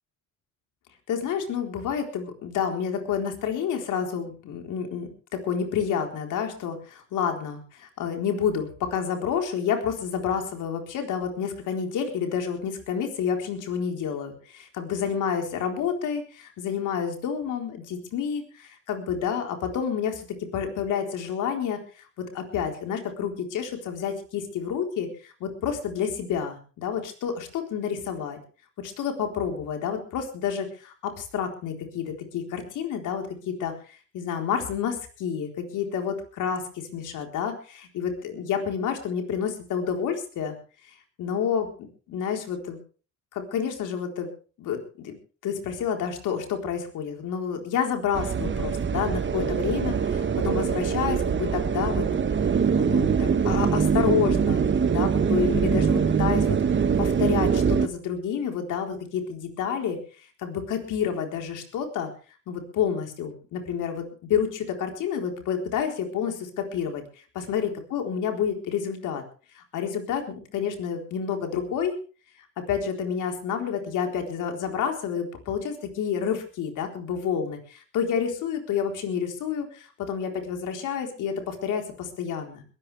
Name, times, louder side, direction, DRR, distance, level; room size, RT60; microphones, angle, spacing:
voice 1, 1.1-20.3 20.5-21.8 22.3-28.4 28.8-40.5 41.2-42.8 43.3-44.3 44.6-45.1 45.4-52.1 52.5-56.6 57.0-60.0 60.4-62.1 62.5-67.0 67.3-69.2 69.5-72.0 72.6-82.6, left 7 dB, 85° left, 4 dB, 4.1 m, -29 dB
sound 1, 48.1-57.9, right 6 dB, 40° right, 1.3 m, -23 dB
22.0 x 14.0 x 3.4 m, 0.37 s
cardioid pair, 90°, 30 cm